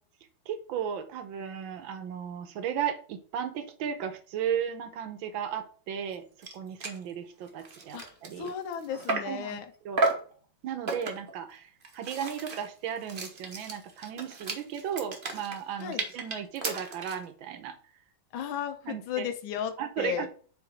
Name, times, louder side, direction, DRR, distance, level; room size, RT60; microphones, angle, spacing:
voice 1, 0.5-8.5 9.3-9.6 9.9-10.0 10.6-17.8 18.9-19.3 19.8-20.3, right 8 dB, 75° right, 9 dB, 1.6 m, -35 dB
sound 1, 6.1-6.2 6.4-6.5 6.8-7.0 7.5-9.4 10.0-10.3 10.9-11.3 11.8-17.2, right 3 dB, 35° right, 0.9 m, -33 dB
voice 2, 8.4-9.7 15.8-16.0 18.3-20.3, left 9 dB, 80° left, 7 dB, 1.5 m, -34 dB
4.9 x 4.0 x 5.3 m, 0.43 s
omnidirectional pair, 2.2 m